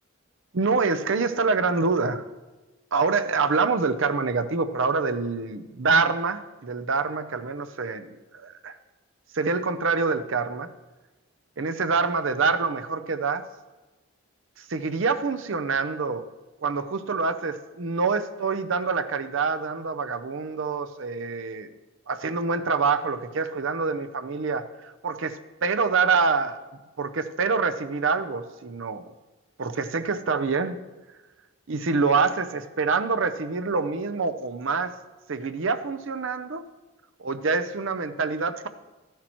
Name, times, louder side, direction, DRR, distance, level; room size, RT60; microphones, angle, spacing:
voice 1, 0.5-2.2 2.9-8.7 9.3-10.7 11.6-13.4 14.6-16.2 16.6-21.7 22.1-26.6 27.0-29.1 29.6-30.8 31.7-34.9 35.3-36.6 37.2-38.7, right 4 dB, 60° right, 9 dB, 0.6 m, -26 dB
12.5 x 10.5 x 3.0 m, 1.1 s
head